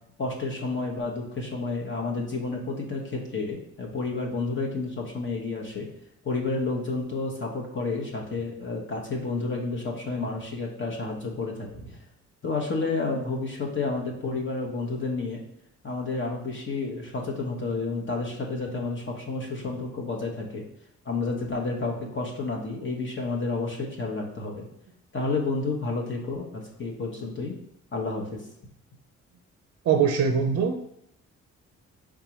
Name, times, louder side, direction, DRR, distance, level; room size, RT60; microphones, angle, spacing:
voice 1, 0.2-5.9 6.2-12.0 12.4-15.4 15.8-20.6 21.0-24.7 25.1-27.6 27.9-28.4, left 3 dB, 40° left, 0 dB, 1.0 m, -30 dB
voice 2, 29.9-30.9, right 6 dB, 55° right, 5 dB, 0.5 m, -22 dB
4.6 x 3.6 x 3.0 m, 0.76 s
cardioid pair, 90°, 30 cm